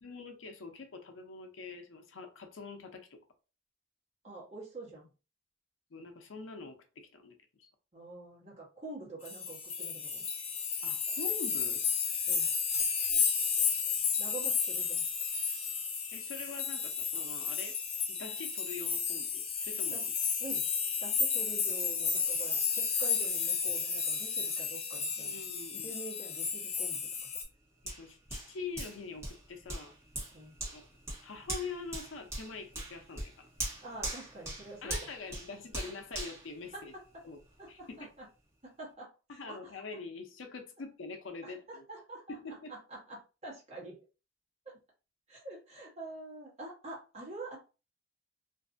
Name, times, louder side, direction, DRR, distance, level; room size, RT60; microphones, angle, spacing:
voice 1, 0.0-3.2 5.9-7.7 10.8-11.8 16.1-17.8 18.1-20.1 25.2-25.9 27.8-29.9 30.7-30.8 31.2-33.5 34.8-36.9 37.2-37.4 37.7-38.1 39.3-41.8 42.3-42.8, left 4 dB, 85° left, 0.6 m, -44 dB
voice 2, 4.2-5.1 7.9-10.2 12.3-12.5 14.2-15.0 19.9-20.1 20.4-20.7 21.0-25.4 25.8-27.0 30.3-30.5 33.8-35.1 36.7-37.0 37.6-38.2 38.6-39.8 41.4-42.4 42.7-44.0 44.6-44.7 45.3-47.6, right 2 dB, 35° right, 1.1 m, -46 dB
sound 1, 9.3-27.4, left 6 dB, 35° left, 0.6 m, -32 dB
Hands, 27.9-37.4 37.8-38.0, right 1 dB, 15° right, 1.1 m, -41 dB
2.6 x 2.4 x 2.5 m
head